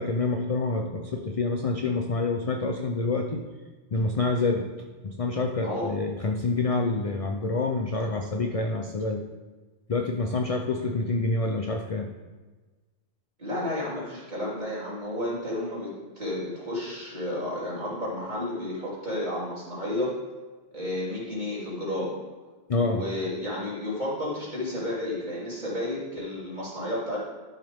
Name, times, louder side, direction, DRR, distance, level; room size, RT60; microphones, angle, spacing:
voice 1, 0.0-3.4 3.9-4.7 5.0-9.2 9.9-12.1 22.7-23.0, left 3 dB, 45° left, 4 dB, 0.5 m, -27 dB
voice 2, 5.6-5.9 13.4-20.2 20.7-22.1 22.7-27.2, left 1 dB, 40° right, -8 dB, 3.2 m, -32 dB
12.0 x 6.5 x 3.5 m, 1.3 s
omnidirectional pair, 1.2 m